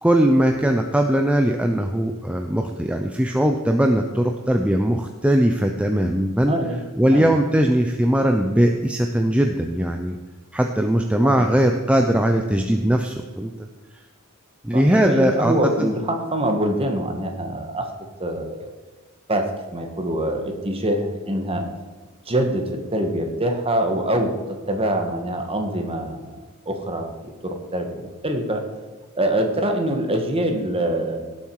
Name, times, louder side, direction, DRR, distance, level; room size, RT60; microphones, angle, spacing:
voice 1, 0.0-6.5 7.0-10.2 10.5-13.5 14.6-15.5 15.8-15.9, right 1 dB, 5° right, 3 dB, 0.6 m, -20 dB
voice 2, 6.5-6.8 7.1-7.3 11.2-11.5 14.7-17.9 18.2-18.7 19.3-21.7 22.2-28.7 29.1-31.2, right 1 dB, 25° right, 4 dB, 1.6 m, -24 dB
17.5 x 7.4 x 4.8 m, 1.3 s
head